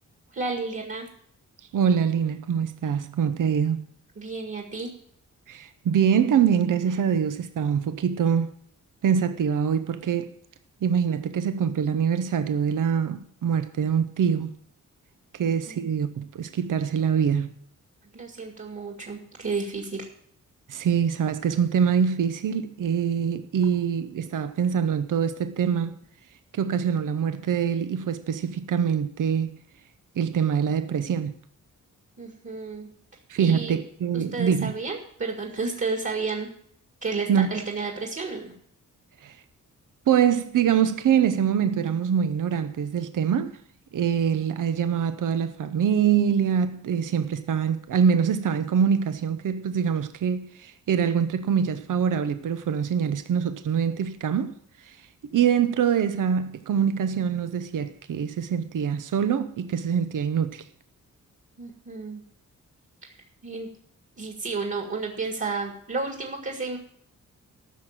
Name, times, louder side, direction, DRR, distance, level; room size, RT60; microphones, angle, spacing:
voice 1, 0.3-1.1 4.2-4.9 15.4-15.9 18.1-20.1 32.2-32.9 33.4-33.8 34.1-36.5 37.0-38.5 61.6-62.2 63.0-63.1 63.4-63.7 64.2-66.8, right 4 dB, 40° right, 2.0 m, -32 dB
voice 2, 1.7-3.9 5.5-8.5 9.0-10.4 10.8-14.5 15.3-17.5 20.7-25.9 26.5-29.6 30.2-31.3 33.3-34.7 37.3-37.6 39.2-39.4 40.1-43.6 43.9-54.6 54.8-55.0 55.3-60.6, right 7 dB, 80° right, 0.8 m, -24 dB
14.0 x 6.2 x 7.3 m
wide cardioid pair, 105°, 32 cm